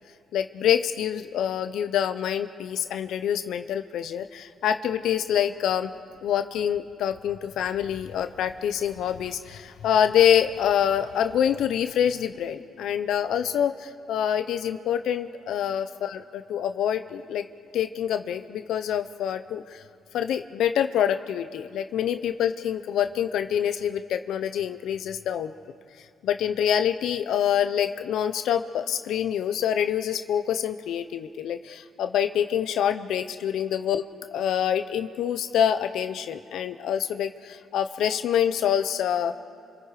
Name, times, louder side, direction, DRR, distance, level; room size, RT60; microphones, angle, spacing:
voice 1, 0.3-5.9 6.2-17.4 17.7-19.8 20.1-25.5 26.2-34.0 34.3-39.3, left 9 dB, 80° left, 9 dB, 0.7 m, -26 dB
29.5 x 26.5 x 4.9 m, 2.5 s
cardioid pair, 90°, 0 cm